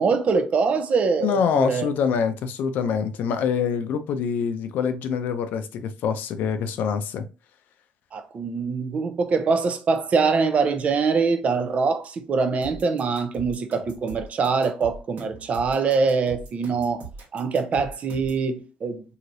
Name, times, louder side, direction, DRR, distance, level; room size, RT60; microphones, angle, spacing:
voice 1, 0.0-1.9 8.1-19.0, right 4 dB, 45° right, 0.5 m, -24 dB
voice 2, 1.2-7.2, left 7 dB, 75° left, 0.4 m, -25 dB
sound 1, 12.6-18.5, right 4 dB, 70° right, 1.2 m, -41 dB
3.1 x 2.7 x 2.6 m
cardioid pair, 95°, 3 cm